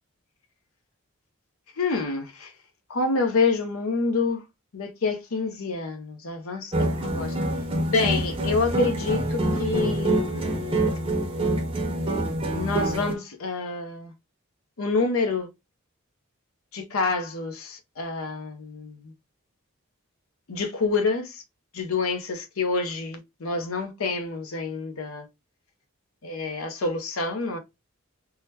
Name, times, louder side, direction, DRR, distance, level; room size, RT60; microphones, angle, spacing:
voice 1, 1.8-2.5 2.9-4.4 4.7-7.4 7.8-10.7 12.5-14.1 14.8-15.5 16.7-19.1 20.5-21.4 21.7-25.3 26.2-27.6, left 4 dB, 80° left, 0.7 m, -27 dB
sound 1, 6.7-13.1, right 1 dB, 25° right, 0.6 m, -26 dB
3.7 x 2.1 x 2.7 m
head